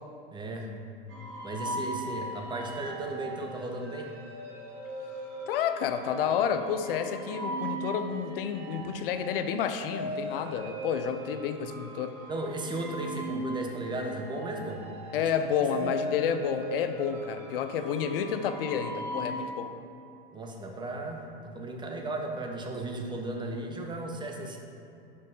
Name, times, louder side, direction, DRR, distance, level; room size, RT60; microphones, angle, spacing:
voice 1, 0.3-0.7 1.4-4.1 12.3-14.8 15.2-15.3 15.7-15.9 20.3-24.6, right 2 dB, 15° right, 2 dB, 0.7 m, -35 dB
sound 1, 1.1-19.5, right 1 dB, 45° right, 1.2 m, -39 dB
voice 2, 5.5-12.1 15.1-19.7, left 7 dB, 70° left, 8 dB, 0.5 m, -30 dB
5.4 x 5.3 x 3.9 m, 2.7 s
hypercardioid pair, 100°, 30 cm